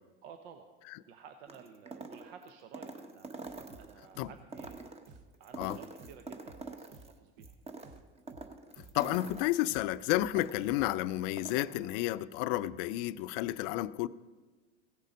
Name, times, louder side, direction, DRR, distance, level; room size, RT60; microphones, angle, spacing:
voice 1, 0.2-0.7 1.1-4.9 5.4-7.9, right 7 dB, 75° right, 7 dB, 0.9 m, -54 dB
sound 1, 1.5-4.1 4.4-7.1 7.4-10.9 11.2-11.7, right 3 dB, 20° right, 1.1 m, -46 dB
sound 2, 3.5-10.8, right 3 dB, 55° right, 1.3 m, -55 dB
voice 2, 8.9-14.1, left 15 dB, 70° left, 16 dB, 0.5 m, -31 dB
16.5 x 6.7 x 5.1 m, 1.4 s
supercardioid pair, 110°, 29 cm